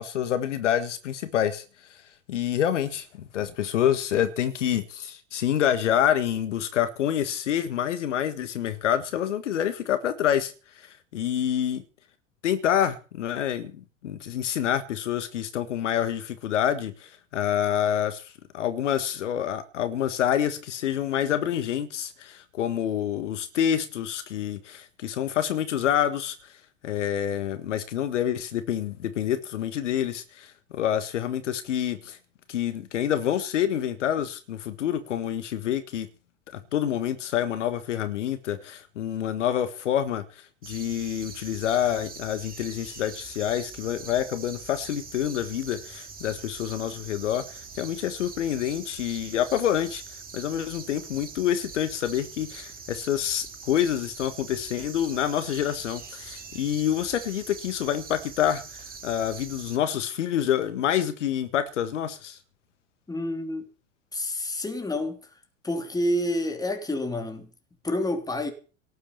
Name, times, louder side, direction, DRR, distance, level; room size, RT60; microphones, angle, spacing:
voice 1, 0.0-1.6 1.9-2.0 2.3-11.8 12.4-13.8 14.0-18.2 18.5-26.4 26.8-32.2 32.5-36.1 36.7-50.0 50.3-58.6 59.0-62.4, left 10 dB, 65° left, 1.7 m, -27 dB
sound 1, 40.6-59.8, right 5 dB, 20° right, 3.1 m, -43 dB
voice 2, 63.1-63.7 64.1-65.2 65.6-67.5 67.8-68.5, left 1 dB, 10° left, 3.2 m, -28 dB
18.0 x 8.3 x 7.0 m
figure-of-eight pair, 80°, 39 cm